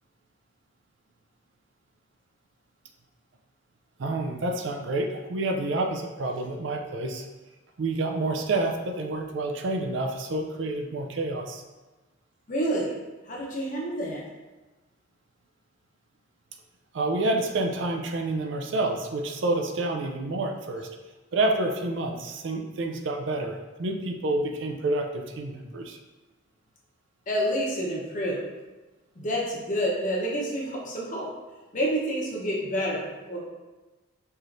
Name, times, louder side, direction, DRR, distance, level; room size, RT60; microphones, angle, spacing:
voice 1, 4.0-7.3 7.8-11.6 16.9-20.9 21.3-26.0, right 2 dB, 70° right, 4 dB, 0.4 m, -28 dB
voice 2, 12.5-12.9 13.3-14.2 27.3-28.4 29.2-31.3 31.7-33.4, equal, 40° left, -3 dB, 0.8 m, -28 dB
4.5 x 3.1 x 2.6 m, 1.2 s
head